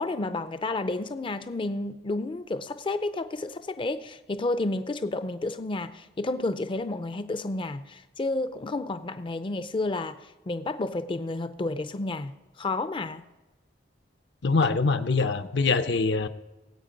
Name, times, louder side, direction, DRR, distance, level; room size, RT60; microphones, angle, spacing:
voice 1, 0.0-12.3 12.6-13.2, left 2 dB, 30° left, 11 dB, 0.4 m, -31 dB
voice 2, 14.4-16.3, left 4 dB, 70° left, 10 dB, 0.7 m, -24 dB
18.5 x 8.3 x 5.2 m, 1.1 s
head